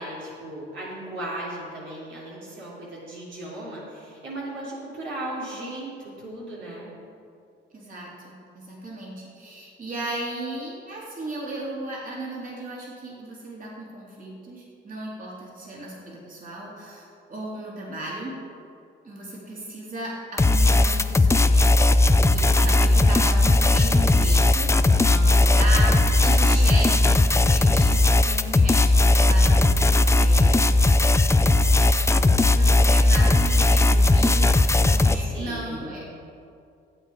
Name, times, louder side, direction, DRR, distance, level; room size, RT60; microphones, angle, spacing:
voice 1, 0.0-6.9 22.5-22.9 25.0-26.0 35.2-36.0, right 1 dB, 70° right, -6 dB, 3.3 m, -36 dB
voice 2, 7.7-18.3 19.0-21.7 22.2-30.6 31.7-36.0, right 2 dB, 45° right, -4 dB, 3.5 m, -36 dB
sound 1, 20.4-35.1, left 2 dB, 15° left, 0.5 m, -18 dB
14.5 x 8.4 x 5.1 m, 2.4 s
cardioid pair, 90°, 20 cm